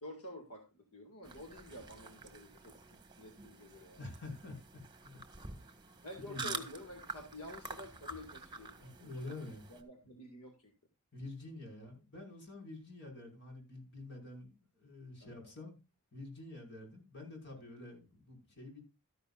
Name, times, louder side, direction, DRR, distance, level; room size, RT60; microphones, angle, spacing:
voice 1, 0.0-4.0 6.0-10.7 15.2-15.5 17.5-17.6, left 1 dB, 85° left, 2.1 m, -50 dB
sound 1, 1.2-9.8, right 3 dB, 20° right, 1.5 m, -48 dB
voice 2, 4.0-4.6 5.0-5.2 5.5-5.7 6.2-6.6 8.8-9.6 11.1-15.8 16.1-18.8, left 2 dB, 55° left, 5.3 m, -48 dB
13.5 x 11.0 x 2.4 m
head